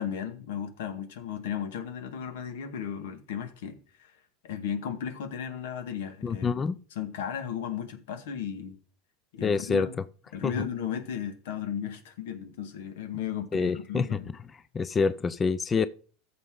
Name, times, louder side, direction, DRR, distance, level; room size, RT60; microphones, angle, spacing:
voice 1, 0.0-4.1 4.4-6.6 6.9-8.8 9.3-10.0 10.3-14.3, left 8 dB, 85° left, 1.8 m, -35 dB
voice 2, 6.2-6.8 9.4-9.9 10.4-10.5 13.5-14.2 14.7-15.9, left 5 dB, 20° left, 0.4 m, -26 dB
14.5 x 6.8 x 3.9 m
supercardioid pair, 145°, 0 cm